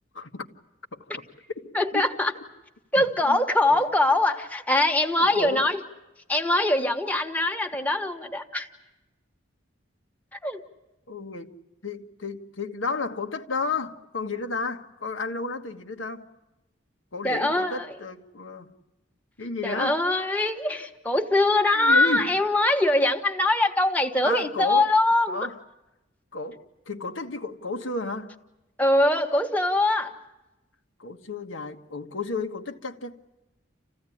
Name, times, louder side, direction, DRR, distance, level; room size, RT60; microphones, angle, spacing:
voice 1, 0.1-0.5 0.9-1.2 1.5-2.1 3.0-3.4 3.7-3.8 5.2-5.6 11.1-11.5 11.8-16.3 17.1-18.7 19.4-20.0 21.7-22.4 24.2-24.9 25.3-25.6 26.3-28.3 31.0-33.3, left 3 dB, 90° left, 1.5 m, -32 dB
voice 2, 1.7-2.3 2.9-5.8 6.3-8.7 10.4-10.6 17.2-17.9 19.6-25.4 28.8-30.1, left 2 dB, 10° left, 1.3 m, -23 dB
28.0 x 15.5 x 10.0 m
head